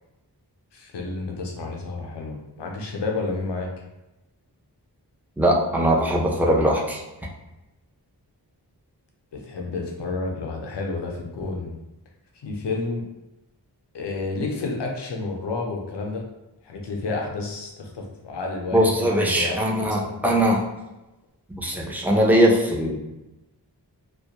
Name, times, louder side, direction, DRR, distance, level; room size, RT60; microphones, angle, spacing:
voice 1, 0.7-3.7 9.3-11.8 12.4-13.0 13.9-16.2 16.6-18.8 19.2-19.6 19.9-20.3, left 3 dB, 90° left, 1 dB, 0.6 m, -30 dB
voice 2, 5.4-7.0 18.7-20.6 21.5-23.0, equal, 5° right, -3 dB, 0.5 m, -20 dB
2.2 x 2.1 x 2.8 m, 0.99 s
wide cardioid pair, 45°, 41 cm